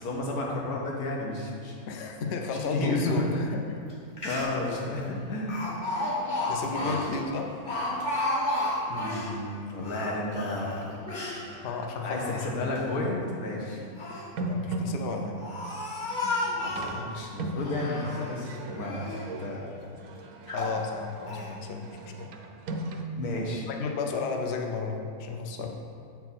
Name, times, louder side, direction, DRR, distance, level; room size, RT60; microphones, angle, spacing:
voice 1, 0.0-1.9 2.7-3.4 4.2-5.7 6.8-7.1 8.9-10.9 12.0-13.9 16.5-19.1 19.4-19.7 23.2-23.7, left 2 dB, 85° left, -2 dB, 1.5 m, -32 dB
voice 2, 1.8-3.3 3.7-3.8 6.5-7.5 11.6-12.7 14.5-15.4 20.5-21.8 22.2-22.3 23.7-25.8, left 4 dB, 60° left, 3 dB, 0.7 m, -33 dB
Speech, 3.9-4.0 4.2-4.7 5.5-9.3 9.8-11.4 12.0-12.8 13.7-14.3 15.0-17.0 17.6-18.4 18.8-19.3 19.8-19.9 20.5-20.8 21.3-21.5, left 1 dB, 40° left, 0.9 m, -32 dB
sound 1, 10.5-11.0 11.5-12.1 12.8-12.9 14.4-23.0, right 2 dB, 75° right, 1.0 m, -38 dB
7.0 x 4.6 x 4.1 m, 2.3 s
omnidirectional pair, 1.6 m